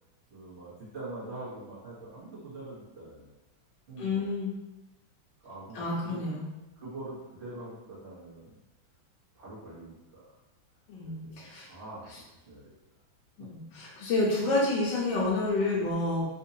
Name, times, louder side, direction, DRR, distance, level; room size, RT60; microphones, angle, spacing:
voice 1, 0.3-3.2 3.9-4.3 5.4-6.2 6.8-8.6 9.3-10.3 11.0-12.7 13.4-13.5, right 2 dB, 35° right, -8 dB, 1.4 m, -44 dB
voice 2, 4.0-4.5 5.7-6.4 10.9-11.7 13.4-16.3, left 2 dB, 70° left, -6 dB, 1.4 m, -29 dB
4.0 x 2.7 x 2.7 m, 1.0 s
omnidirectional pair, 2.2 m